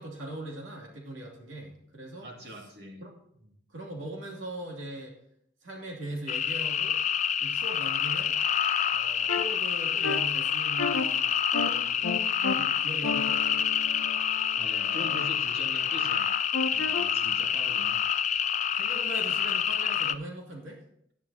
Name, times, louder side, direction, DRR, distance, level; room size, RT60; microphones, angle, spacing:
voice 1, 0.0-2.3 3.0-3.1 3.4-5.1 5.6-7.0 7.4-8.3 8.9-12.0 12.5-13.6 18.8-20.8, right 1 dB, 90° right, -1 dB, 2.7 m, -40 dB
voice 2, 2.2-3.0 14.6-16.3 16.7-18.2, equal, 60° right, 1 dB, 2.4 m, -42 dB
sound 1, 6.3-20.2, left 8 dB, 40° left, 0.4 m, -27 dB
sound 2, 9.3-9.4 10.0-10.2 10.8-11.0 11.5-11.7 12.0-12.5 13.0-15.3 16.5-17.0, left 4 dB, 75° left, 0.8 m, -32 dB
16.5 x 10.5 x 2.8 m, 0.70 s
head